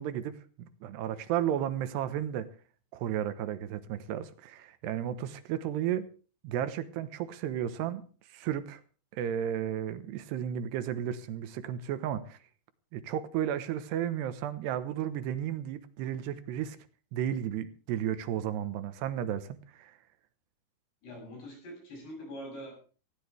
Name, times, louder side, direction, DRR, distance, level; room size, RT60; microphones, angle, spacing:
voice 1, 0.0-2.5 2.9-6.1 6.4-8.0 8.3-8.8 9.1-12.4 12.9-16.8 17.1-19.9, right 10 dB, 85° right, 11 dB, 3.1 m, -33 dB
voice 2, 21.0-22.7, equal, 80° left, 0 dB, 9.7 m, -43 dB
19.0 x 16.5 x 3.4 m, 0.39 s
omnidirectional pair, 4.8 m